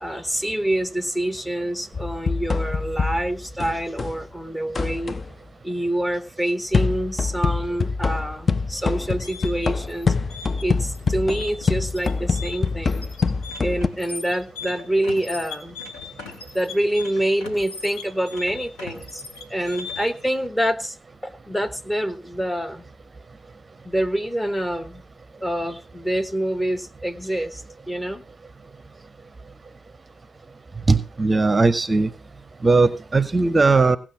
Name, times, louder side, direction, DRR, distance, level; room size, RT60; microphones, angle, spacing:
voice 1, 0.0-5.2 5.6-10.1 10.6-13.0 13.6-15.8 16.5-19.2 19.5-21.0 21.2-22.8 23.8-25.0 25.4-28.2, right 1 dB, 10° left, 10 dB, 1.2 m, -26 dB
sound 1, 1.9-4.2 4.7-5.3 6.7-13.9, left 4 dB, 40° left, 0.5 m, -25 dB
sound 2, 9.1-20.3, left 4 dB, 80° left, 2.7 m, -38 dB
voice 2, 30.9-32.1 32.6-34.0, right 3 dB, 30° right, 16 dB, 0.7 m, -18 dB
17.0 x 6.1 x 6.0 m, 0.34 s
hypercardioid pair, 45°, 0 cm